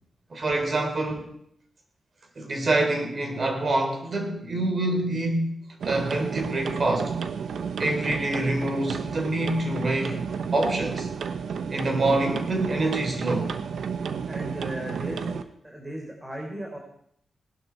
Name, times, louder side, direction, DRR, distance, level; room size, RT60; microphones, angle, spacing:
voice 1, 0.3-1.3 2.4-7.2 7.8-10.2 10.5-11.1 11.7-13.5, right 2 dB, 45° right, 4 dB, 3.8 m, -26 dB
sound 1, 5.8-15.4, right 6 dB, 85° right, 1.1 m, -32 dB
voice 2, 14.3-16.8, right 1 dB, 20° right, 0 dB, 3.6 m, -36 dB
18.5 x 12.5 x 4.6 m, 0.69 s
cardioid pair, 85°, 0 cm